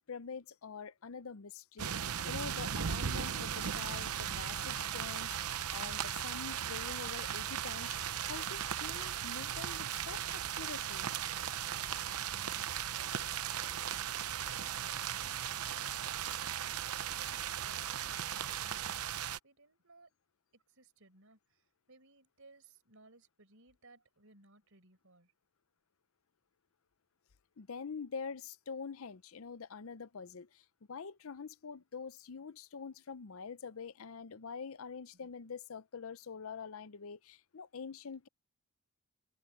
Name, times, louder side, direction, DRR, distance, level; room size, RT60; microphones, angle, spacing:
voice 1, 0.1-11.1 27.6-38.3, left 5 dB, 65° left, 0.6 m, -45 dB
sound 1, 1.8-19.4, right 9 dB, 85° right, 0.8 m, -37 dB
voice 2, 12.2-18.9 19.4-20.1 20.5-25.3 35.1-35.3, right 2 dB, 65° right, 5.4 m, -62 dB
head